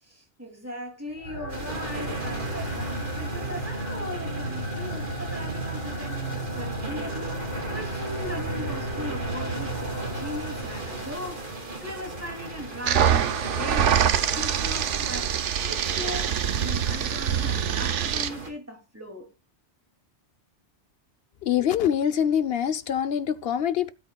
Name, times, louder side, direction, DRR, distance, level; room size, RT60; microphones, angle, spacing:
voice 1, 0.0-11.5 11.8-19.3, left 1 dB, 10° right, 2.7 m, -39 dB
sound 1, 1.2-11.6, right 1 dB, 40° left, 3.9 m, -33 dB
sound 2, 1.5-18.5, right 2 dB, 45° right, 2.4 m, -38 dB
sound 3, 12.9-18.3, right 8 dB, 85° right, 1.1 m, -24 dB
voice 2, 21.4-23.9, left 9 dB, 65° left, 0.8 m, -24 dB
17.0 x 8.2 x 2.3 m
omnidirectional pair, 1.2 m